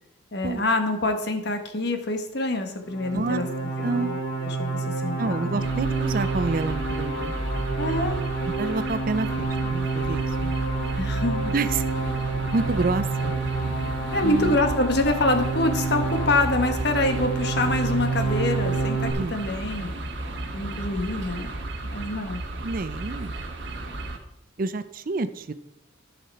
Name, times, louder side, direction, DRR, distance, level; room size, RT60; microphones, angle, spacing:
voice 1, 0.3-3.5 3.8-5.6 7.8-8.2 11.0-11.5 14.1-19.9 20.5-21.5 21.9-22.4, left 2 dB, 55° left, 6 dB, 1.2 m, -26 dB
sound 1, 2.8-19.1, right 4 dB, 80° left, 2.2 m, -28 dB
voice 2, 3.8-4.1 5.2-7.3 8.6-10.5 11.5-11.8 12.5-13.3 14.2-14.6 19.1-19.3 22.6-23.4 24.6-25.5, right 3 dB, 45° right, 13 dB, 0.5 m, -28 dB
sound 2, 5.6-24.2, right 2 dB, 60° right, 1.3 m, -33 dB
14.0 x 5.7 x 4.2 m, 0.82 s
head